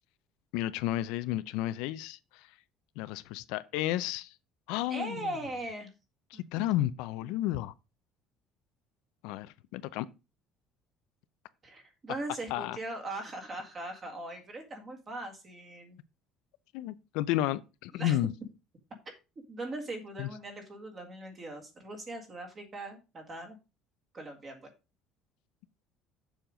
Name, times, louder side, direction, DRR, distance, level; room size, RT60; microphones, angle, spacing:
voice 1, 0.5-2.5 3.0-4.3 4.7-5.3 6.3-7.7 9.2-10.1 12.5-12.8 16.7-18.3 20.2-20.3, left 14 dB, 85° left, 0.5 m, -32 dB
voice 2, 4.9-5.9 6.3-6.6 11.6-16.0 17.9-18.2 19.5-23.6 24.1-24.6, right 2 dB, 20° right, 1.8 m, -40 dB
7.0 x 5.8 x 5.0 m
cardioid pair, 180°, 0 cm